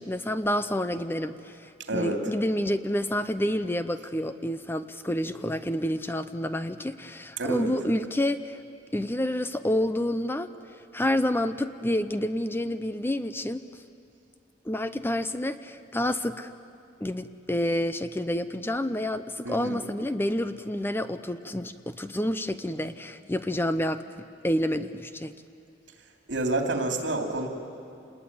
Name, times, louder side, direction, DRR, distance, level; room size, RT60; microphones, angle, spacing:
voice 1, 0.0-8.6 8.9-10.5 10.9-13.6 14.7-16.5 17.0-25.3, left 1 dB, 10° left, 11 dB, 0.6 m, -29 dB
voice 2, 1.9-2.2 7.4-7.7 19.4-19.8 26.3-27.5, right 2 dB, 70° right, 3 dB, 3.0 m, -28 dB
27.0 x 20.5 x 9.7 m, 2.5 s
head